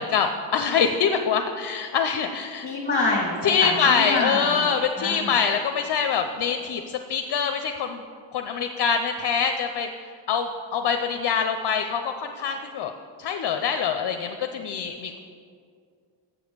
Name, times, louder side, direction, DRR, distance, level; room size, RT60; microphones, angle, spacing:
voice 1, 0.0-2.7 3.4-8.0 8.3-9.9 10.3-12.9 13.2-15.2, left 6 dB, 60° left, 6 dB, 0.5 m, -24 dB
voice 2, 2.6-4.5 5.0-5.3, left 2 dB, 20° left, -4 dB, 1.2 m, -26 dB
7.4 x 6.9 x 6.6 m, 2.2 s
wide cardioid pair, 165°, 47 cm